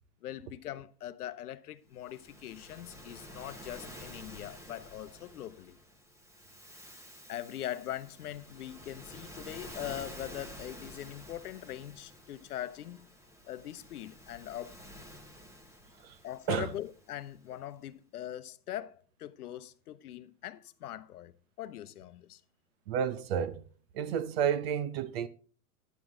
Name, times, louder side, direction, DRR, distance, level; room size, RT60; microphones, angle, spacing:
voice 1, 0.2-5.8 7.3-13.1 13.5-14.8 16.2-21.3 21.6-22.4, left 12 dB, 80° left, 0.8 m, -41 dB
Waves surf, 2.0-17.5, equal, 5° right, 1.1 m, -50 dB
voice 2, 22.9-23.6 23.9-25.3, right 8 dB, 45° right, 0.7 m, -31 dB
9.4 x 9.4 x 3.7 m
hypercardioid pair, 145°, 45 cm